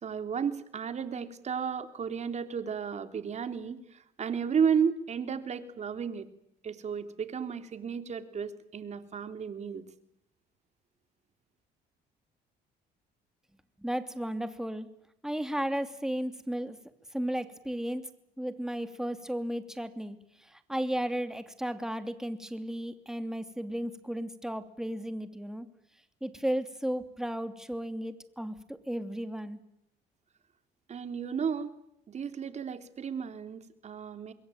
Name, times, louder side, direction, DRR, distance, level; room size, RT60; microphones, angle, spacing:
voice 1, 0.0-3.8 4.2-6.3 6.6-9.8 30.9-31.7 32.1-34.3, right 7 dB, 40° right, 9 dB, 3.2 m, -33 dB
voice 2, 13.8-14.9 15.2-16.8 17.1-18.1 18.4-25.7 26.2-29.6, equal, 5° right, 9 dB, 2.9 m, -34 dB
26.5 x 22.0 x 9.3 m, 0.77 s
cardioid pair, 110°, 17 cm